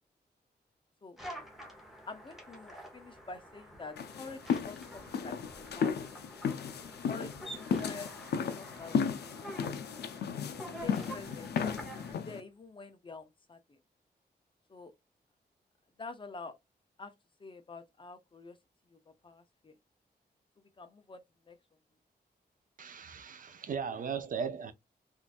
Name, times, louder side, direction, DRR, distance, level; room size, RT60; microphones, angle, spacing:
sound 1, 1.2-12.1, equal, ahead, 0.9 m, -48 dB
voice 1, 2.1-6.2 7.1-7.3 7.8-8.1 8.5-9.3 10.8-11.6 12.3-13.8 14.7-14.9 16.0-16.5 17.0-17.1 17.4-18.6 18.9-19.0 19.2-19.7 20.8-21.6, left 3 dB, 30° left, 0.6 m, -47 dB
sound 2, 4.0-12.4, left 6 dB, 75° left, 0.5 m, -34 dB
voice 2, 22.8-24.7, right 6 dB, 55° right, 0.5 m, -37 dB
3.7 x 2.5 x 2.4 m
wide cardioid pair, 165°, 17 cm